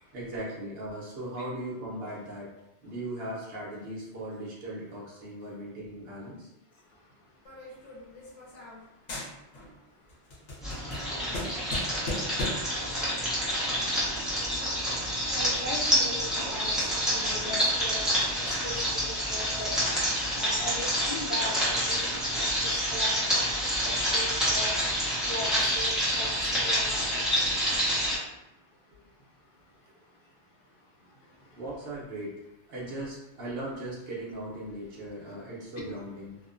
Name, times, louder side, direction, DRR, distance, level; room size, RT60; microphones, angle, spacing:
voice 1, 0.1-2.5 2.8-6.5 31.5-32.4 32.7-36.4, right 1 dB, 60° right, -5 dB, 1.0 m, -38 dB
sound 1, 7.4-8.8 9.1-9.8 10.1-12.8, left 1 dB, 75° left, 1.1 m, -37 dB
sound 2, 10.6-28.1, equal, ahead, 0.7 m, -28 dB
voice 2, 15.3-18.0 18.6-18.9 19.3-19.7 20.4-22.5 22.9-23.2 23.8-24.7 25.3-26.3 26.6-27.2, left 1 dB, 55° left, -2 dB, 0.7 m, -38 dB
2.7 x 2.1 x 2.5 m, 0.93 s
omnidirectional pair, 1.2 m